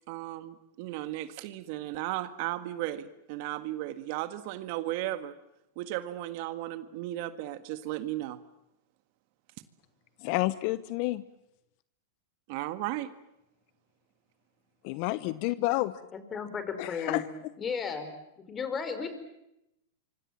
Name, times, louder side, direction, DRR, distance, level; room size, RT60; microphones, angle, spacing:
voice 1, 0.1-5.3 5.8-8.4 12.5-13.1, right 15 dB, 55° right, 11 dB, 1.7 m, -35 dB
voice 2, 10.2-11.2 14.8-15.9 16.8-17.2, left 19 dB, 55° left, 16 dB, 0.9 m, -29 dB
voice 3, 16.1-17.3 17.6-18.1 18.5-19.1, left 6 dB, 25° left, 9 dB, 5.0 m, -34 dB
26.0 x 25.0 x 7.5 m, 0.86 s
hypercardioid pair, 115°, 0 cm